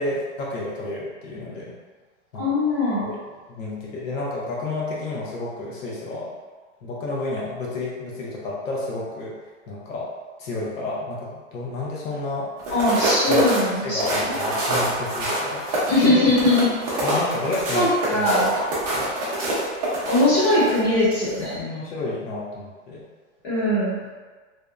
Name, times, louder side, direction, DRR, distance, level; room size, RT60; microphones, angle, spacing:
voice 1, 0.0-1.7 2.3-2.7 3.0-3.2 3.5-6.3 6.8-9.3 9.7-10.1 10.4-12.5 13.3-13.4 13.8-16.2 17.0-18.3 18.9-19.1 21.4-23.1, left 2 dB, 80° left, -5 dB, 0.7 m, -31 dB
voice 2, 2.4-3.0 12.7-14.0 14.3-14.4 15.9-16.7 17.7-18.5 20.1-21.6 23.4-24.0, left 1 dB, 20° left, -9 dB, 0.5 m, -20 dB
sound 1, 12.6-20.8 21.2-21.4, right 1 dB, 30° right, 0.6 m, -25 dB
2.7 x 2.1 x 2.3 m, 1.4 s
hypercardioid pair, 170°, 38 cm